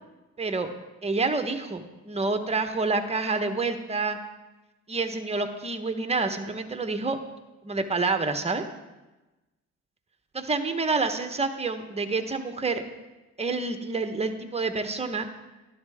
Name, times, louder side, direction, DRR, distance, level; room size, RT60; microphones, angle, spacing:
voice 1, 0.4-0.7 1.0-4.2 4.9-7.2 7.6-8.6 10.3-12.8 13.4-15.3, right 3 dB, 20° right, 7 dB, 1.1 m, -28 dB
12.0 x 11.5 x 3.6 m, 1.1 s
cardioid pair, 90°, 30 cm